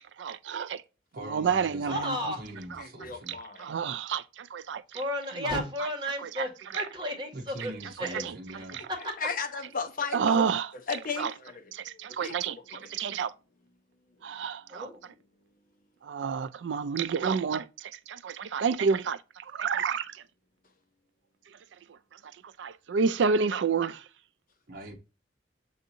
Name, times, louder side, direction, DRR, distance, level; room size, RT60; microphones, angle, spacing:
voice 1, 0.2-0.8 1.3-2.2 3.6-4.8 5.4-5.5 8.0-8.1 10.1-10.7 11.2-11.3 11.7-13.3 14.2-14.9 16.1-17.7 18.1-19.2 19.5-20.1 22.6-24.0, right 6 dB, 85° right, 0.4 m, -29 dB
voice 2, 1.1-2.0 2.3-3.3 7.3-8.8 24.7-25.0, right 1 dB, 55° right, 1.0 m, -42 dB
voice 3, 1.9-2.4 4.9-7.7 8.0-8.2 8.6-8.7 14.7-15.0, equal, 25° right, 1.4 m, -33 dB
voice 4, 2.8-3.6 9.2-10.5 10.9-11.7 12.2-12.9, left 4 dB, 50° left, 0.8 m, -35 dB
7.1 x 2.7 x 2.6 m
head